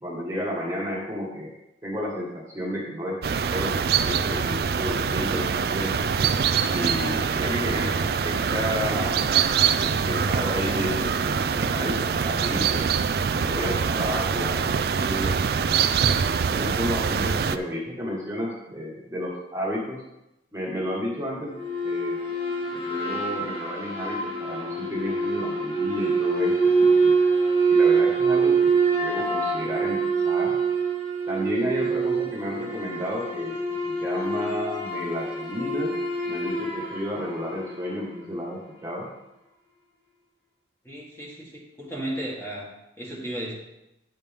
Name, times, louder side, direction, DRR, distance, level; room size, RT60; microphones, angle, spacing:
voice 1, 0.0-1.5 1.8-6.1 6.7-9.3 9.6-12.8 13.3-14.7 15.0-15.8 16.5-20.0 20.5-21.5 21.8-22.2 22.7-27.1 27.7-30.5 31.3-33.6 33.8-35.9 36.2-39.1, equal, 15° right, -5 dB, 1.4 m, -32 dB
sound 1, 3.2-17.6, right 6 dB, 55° right, 0.3 m, -24 dB
sound 2, 21.5-38.1, right 4 dB, 30° left, 2.7 m, -25 dB
voice 2, 40.8-42.7 43.0-43.5, right 1 dB, 15° left, -5 dB, 1.8 m, -34 dB
9.9 x 6.8 x 3.6 m, 0.91 s
head